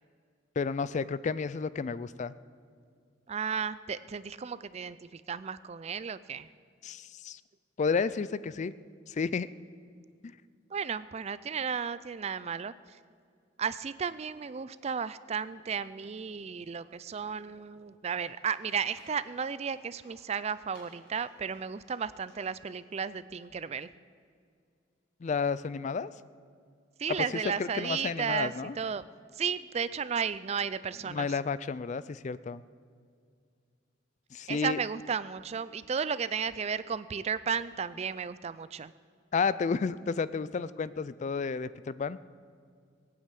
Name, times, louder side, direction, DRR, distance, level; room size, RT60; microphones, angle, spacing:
voice 1, 0.6-2.3 6.8-7.4 7.8-8.7 9.1-9.5 25.2-26.1 27.6-28.8 31.1-32.6 34.3-34.8 39.3-42.2, left 5 dB, 40° left, 17 dB, 0.3 m, -31 dB
voice 2, 3.3-6.5 10.7-13.0 13.6-23.9 27.0-29.0 29.3-31.3 34.5-38.9, right 6 dB, 35° right, 16 dB, 0.4 m, -34 dB
Livestock farm animals working animals, 18.2-23.2, left 1 dB, 60° left, 5.5 m, -61 dB
18.5 x 8.7 x 8.4 m, 2.2 s
head